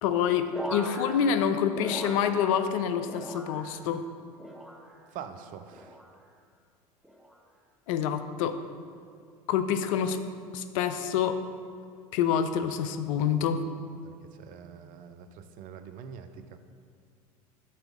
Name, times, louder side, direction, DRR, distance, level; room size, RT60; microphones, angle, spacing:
voice 1, 0.0-4.1 7.9-8.6 9.5-10.2 10.5-11.4 12.1-13.6, left 8 dB, 60° left, 9 dB, 0.5 m, -27 dB
sound 1, 0.5-2.8 3.0-3.9 4.4-5.1 5.7-6.2 7.0-7.4 8.4-8.7, equal, ahead, 0.7 m, -40 dB
voice 2, 5.1-6.0 14.0-14.1 14.4-16.6, right 7 dB, 45° right, 9 dB, 0.5 m, -44 dB
5.4 x 4.4 x 5.2 m, 2.3 s
figure-of-eight pair, 75°, 19 cm